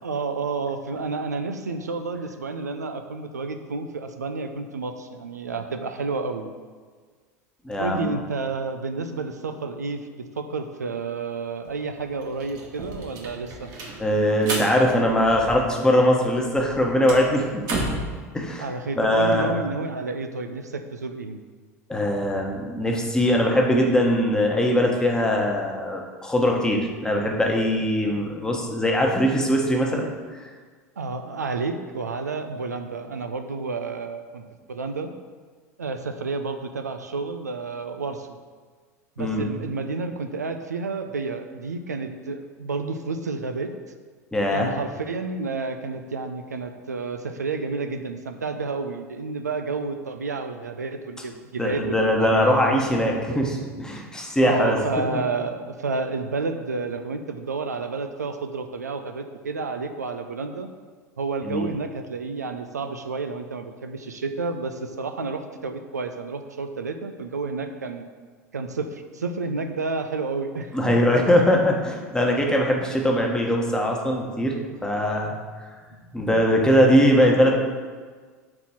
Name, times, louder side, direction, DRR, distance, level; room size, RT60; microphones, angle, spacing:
voice 1, 0.0-6.5 7.8-13.7 18.6-21.4 31.0-34.4 34.7-35.1 35.8-38.4 39.2-43.7 44.5-53.0 53.3-53.4 54.4-60.7 61.2-68.0 68.5-71.7, right 4 dB, 85° right, 7 dB, 0.4 m, -30 dB
voice 2, 7.6-8.1 14.0-17.8 18.3-18.7 19.0-19.5 21.9-30.1 39.2-39.4 44.3-44.7 51.6-54.8 55.1-55.2 61.4-61.7 70.7-74.6 74.8-75.4 76.1-77.6, equal, 10° left, 0 dB, 1.1 m, -21 dB
sound 1, 11.7-11.8 12.0-15.9 16.2-18.1, right 2 dB, 45° right, 1.3 m, -33 dB
4.3 x 4.2 x 5.6 m, 1.6 s
figure-of-eight pair, 80°, 9 cm